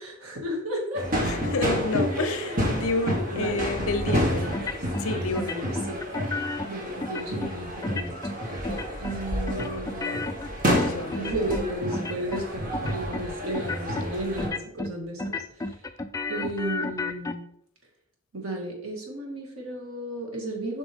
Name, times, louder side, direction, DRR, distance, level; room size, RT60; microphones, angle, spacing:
voice 1, 0.2-1.1 2.2-2.6 3.3-3.6 5.4-6.0 6.6-10.2 11.2-15.8 16.3-17.5 18.3-20.8, right 1 dB, 70° right, 2.2 m, -33 dB
sound 1, 0.9-14.5, equal, 40° right, 1.7 m, -29 dB
voice 2, 1.2-4.7 5.0-5.6 10.7-11.6, left 2 dB, 70° left, 0.7 m, -30 dB
sound 2, 4.5-5.1 5.3-6.7 7.0-7.5 7.8-8.4 8.6-9.2 9.5-11.7 11.9-12.5 12.7-13.2 13.5-14.1 14.4-14.9 15.2-17.3, left 2 dB, 15° left, 0.3 m, -32 dB
7.5 x 6.0 x 3.6 m
head